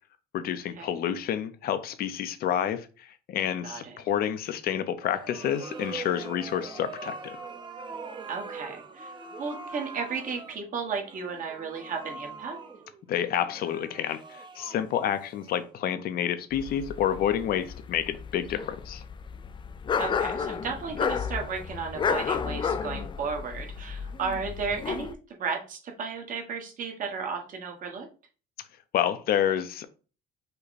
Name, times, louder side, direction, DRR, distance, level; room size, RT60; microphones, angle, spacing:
voice 1, 0.3-7.2 13.1-19.0 28.9-29.8, left 10 dB, 65° left, 0.6 m, -29 dB
voice 2, 3.6-4.0 8.3-9.1 9.4-12.6 20.0-28.1, right 5 dB, 50° right, 1.4 m, -34 dB
sound 1, 5.0-16.0, right 4 dB, 25° right, 0.7 m, -42 dB
sound 2, 16.5-25.1, left 6 dB, 30° left, 0.3 m, -32 dB
5.5 x 2.2 x 4.1 m
cardioid pair, 110°, 17 cm